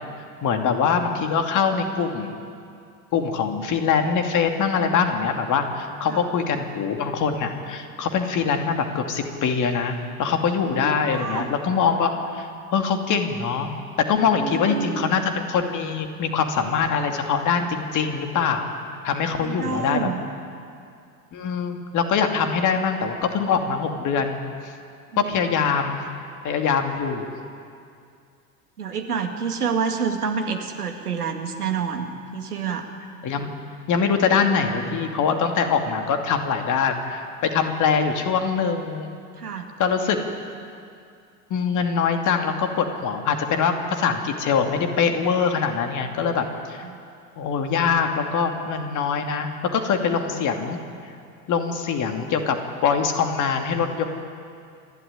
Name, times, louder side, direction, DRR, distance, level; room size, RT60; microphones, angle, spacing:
voice 1, 0.4-2.4 3.1-13.7 14.1-18.7 19.0-20.1 21.3-24.4 25.2-26.0 26.4-27.3 33.2-33.5 33.9-39.1 39.8-40.2 41.5-46.8 47.4-50.8 51.5-54.0, left 6 dB, 40° left, 5 dB, 2.6 m, -23 dB
voice 2, 10.7-11.5 14.4-15.1 19.3-20.2 25.1-25.3 28.8-32.9 39.4-39.7 46.8-47.0, right 6 dB, 80° right, 5 dB, 2.1 m, -28 dB
28.0 x 12.0 x 9.9 m, 2.4 s
figure-of-eight pair, 70°, 45 cm